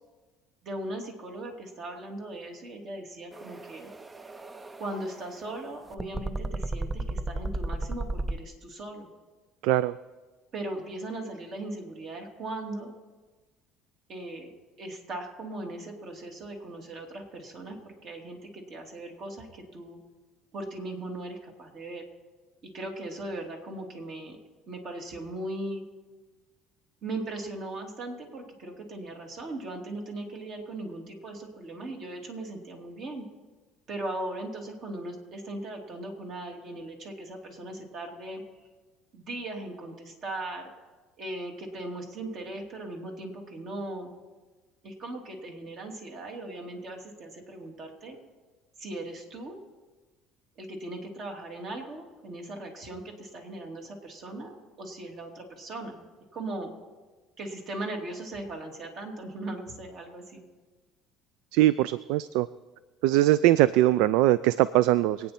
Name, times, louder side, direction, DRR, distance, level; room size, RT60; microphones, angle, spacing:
voice 1, 0.6-3.9 4.8-9.1 10.5-12.9 14.1-14.5 14.8-20.0 20.5-22.0 22.6-24.4 24.7-25.8 27.0-33.3 33.9-38.4 39.1-40.7 41.2-44.1 44.8-48.2 48.8-49.6 50.6-56.0 56.3-56.7 57.4-60.5, right 2 dB, 50° right, 2 dB, 2.7 m, -38 dB
sound 1, 3.3-8.4, right 2 dB, 15° right, 0.5 m, -34 dB
voice 2, 9.6-9.9 61.5-62.5 63.0-65.3, right 15 dB, 80° right, 17 dB, 0.3 m, -22 dB
24.5 x 9.2 x 4.3 m, 1.3 s
cardioid pair, 125°, 0 cm